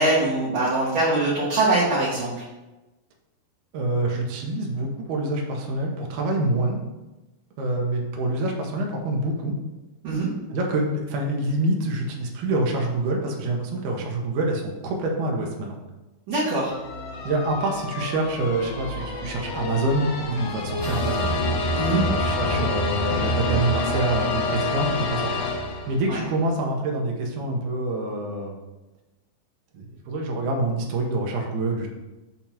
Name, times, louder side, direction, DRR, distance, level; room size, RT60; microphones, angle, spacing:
voice 1, 0.0-2.3 10.0-10.3 16.3-16.7 21.7-22.0 26.1-26.2, right 2 dB, 60° right, -10 dB, 2.1 m, -22 dB
voice 2, 3.7-6.8 7.6-9.6 10.5-15.8 17.2-21.4 21.9-25.5 25.9-28.6 29.7-31.9, right 2 dB, 80° right, 0 dB, 1.8 m, -26 dB
sound 1, 16.7-26.2, left 2 dB, 75° left, 3.2 m, -27 dB
7.0 x 2.9 x 5.9 m, 1.1 s
omnidirectional pair, 4.8 m